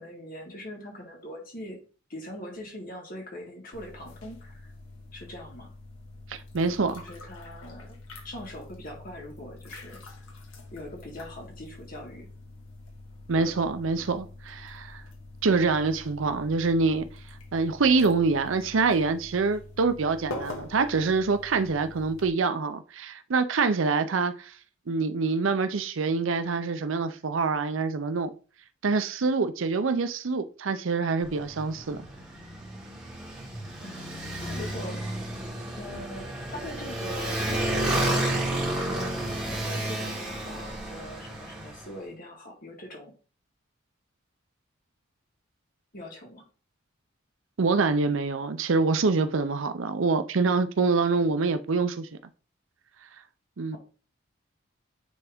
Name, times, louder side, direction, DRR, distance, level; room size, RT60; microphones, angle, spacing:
voice 1, 0.0-1.8 2.1-4.7 5.1-5.7 7.0-8.0 8.2-10.0 10.7-12.3 33.8-35.0 35.8-43.1 45.9-46.4, left 1 dB, 45° left, 2.0 m, -42 dB
sound 1, 3.7-22.3, left 2 dB, 80° left, 1.6 m, -45 dB
voice 2, 6.3-7.0 13.3-15.0 15.4-17.1 17.5-24.5 24.9-28.3 28.8-32.0 47.6-52.1 53.6-53.8, right 4 dB, 70° right, 0.6 m, -25 dB
Motorcycle, 31.2-41.9, right 1 dB, 5° right, 2.0 m, -31 dB
9.4 x 3.4 x 3.6 m
head